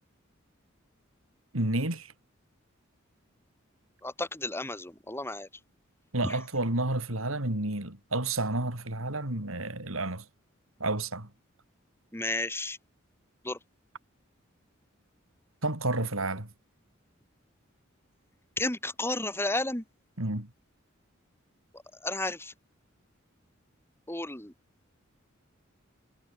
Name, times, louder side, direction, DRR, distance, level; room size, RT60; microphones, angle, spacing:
voice 1, 1.5-2.1 6.1-10.3 10.8-11.3 15.6-16.5 20.2-20.5, right 2 dB, 90° right, 4.7 m, -30 dB
voice 2, 4.0-5.5 6.2-6.4 12.1-12.8 13.4-13.6 18.6-19.8 21.7-22.5 24.1-24.5, left 2 dB, 10° left, 3.0 m, -32 dB
head